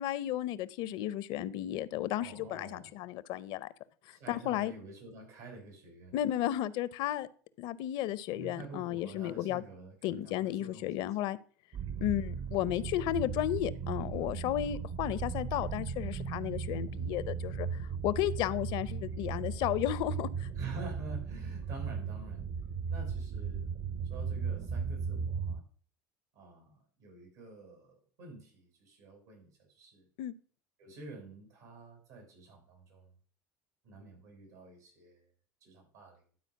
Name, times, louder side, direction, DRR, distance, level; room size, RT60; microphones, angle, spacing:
voice 1, 0.0-3.7 4.3-4.7 6.1-7.3 7.6-9.6 10.0-11.4 12.0-17.7 18.0-20.5 30.2-30.3, left 13 dB, 65° left, 0.6 m, -33 dB
voice 2, 2.1-2.9 4.1-6.2 8.3-11.2 20.6-22.5 22.9-23.7 24.1-25.6 26.4-30.1 30.8-33.1 33.8-35.2 35.6-36.2, right 3 dB, 85° right, 5.5 m, -48 dB
sound 1, 11.7-25.6, right 6 dB, 55° right, 1.0 m, -37 dB
12.0 x 4.2 x 5.7 m
supercardioid pair, 95°, 9 cm